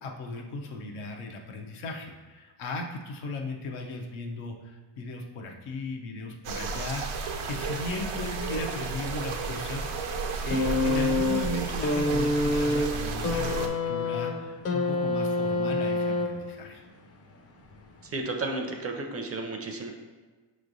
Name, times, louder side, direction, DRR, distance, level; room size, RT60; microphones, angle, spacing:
voice 1, 0.0-16.8, left 2 dB, 90° left, 2 dB, 0.7 m, -37 dB
sound 1, 6.4-13.7, right 4 dB, 70° right, 0.6 m, -33 dB
sound 2, 10.5-16.7 17.7-17.8, left 2 dB, 30° left, 0.4 m, -27 dB
voice 2, 18.0-19.9, right 2 dB, 30° right, 3 dB, 0.5 m, -33 dB
5.3 x 3.2 x 2.6 m, 1.3 s
cardioid pair, 100°, 49 cm